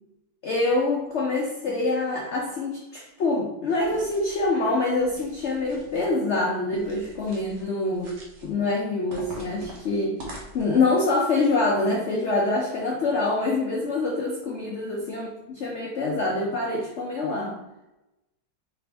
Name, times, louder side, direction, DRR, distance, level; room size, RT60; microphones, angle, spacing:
voice 1, 0.4-8.1 8.4-10.2 10.5-17.6, left 2 dB, 70° left, -1 dB, 0.6 m, -25 dB
sound 1, 3.8-4.5 5.0-6.1 6.7-7.6 7.9-8.5 9.1-10.9, equal, 70° right, 1.6 m, -44 dB
5.0 x 2.6 x 3.3 m, 0.97 s
omnidirectional pair, 1.9 m